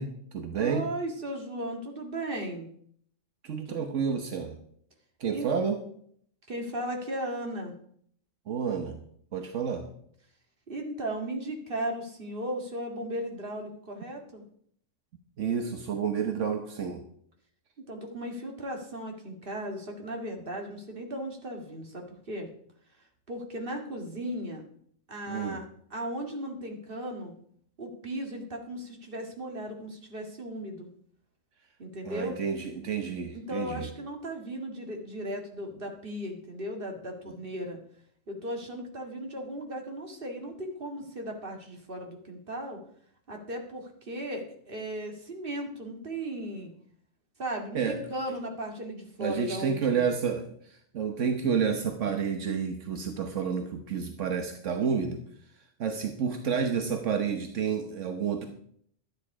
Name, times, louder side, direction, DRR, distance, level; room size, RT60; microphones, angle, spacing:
voice 1, 0.0-0.9 3.4-4.6 5.2-5.8 8.5-9.0 9.3-9.9 15.4-17.0 25.3-25.6 32.0-33.9 47.7-48.0 49.2-55.2 55.8-58.5, right 6 dB, 80° right, 5 dB, 1.4 m, -30 dB
voice 2, 0.5-2.7 3.7-3.8 5.3-5.5 6.5-7.8 10.7-14.4 17.8-22.5 23.3-24.6 25.1-27.4 27.8-30.9 31.8-32.4 33.3-37.8 38.3-42.8 43.3-46.7 47.4-50.1, right 1 dB, 45° right, 2 dB, 2.3 m, -36 dB
12.5 x 9.6 x 4.9 m, 0.63 s
omnidirectional pair, 1.3 m